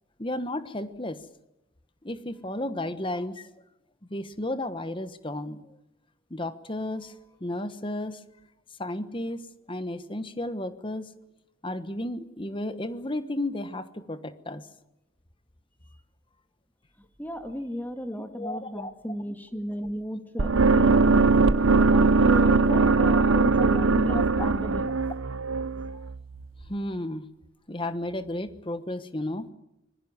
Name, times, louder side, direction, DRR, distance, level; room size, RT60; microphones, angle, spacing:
voice 1, 0.2-1.2 2.0-3.5 4.1-5.6 6.3-7.1 7.4-8.2 8.8-9.4 9.7-11.1 11.6-14.6 18.2-18.9 22.7-23.3 23.5-24.5 26.7-27.3 27.7-29.5, left 1 dB, 25° left, 12 dB, 1.2 m, -33 dB
voice 2, 17.2-21.3 21.9-24.9, equal, 10° left, 7 dB, 1.9 m, -34 dB
sound 1, 20.4-26.4, right 3 dB, 75° right, 0.9 m, -21 dB
25.5 x 21.5 x 7.4 m, 0.87 s
head